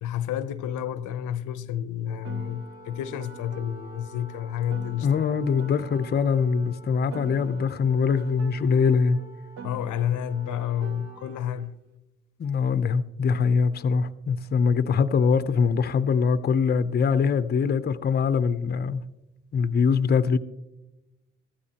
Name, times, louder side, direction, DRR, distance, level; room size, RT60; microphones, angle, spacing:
voice 1, 0.0-5.2 9.6-11.7, left 10 dB, 80° left, 0.6 m, -30 dB
Wind instrument woodwind instrument, 2.0-11.2, left 4 dB, 10° right, 2.8 m, -50 dB
Piano, 2.2-6.7 7.1-11.7, right 7 dB, 55° right, 0.8 m, -45 dB
voice 2, 5.0-9.2 12.4-19.0 19.5-20.4, left 6 dB, 35° left, 0.6 m, -23 dB
15.0 x 12.5 x 2.8 m
cardioid pair, 90°, 30 cm